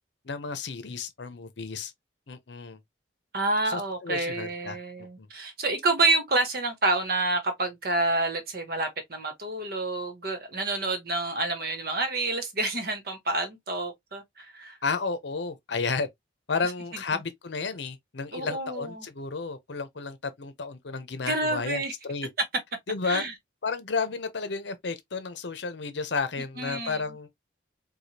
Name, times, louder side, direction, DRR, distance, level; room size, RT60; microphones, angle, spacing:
voice 1, 0.2-1.9 2.3-2.8 3.7-5.3 14.8-16.1 16.5-22.3 22.9-23.2 23.6-27.3, left 4 dB, 70° left, 0.7 m, -32 dB
voice 2, 3.3-14.8 18.3-19.1 21.2-21.9 23.0-23.3 26.6-27.0, right 2 dB, 50° right, 1.1 m, -28 dB
4.8 x 2.3 x 2.7 m
head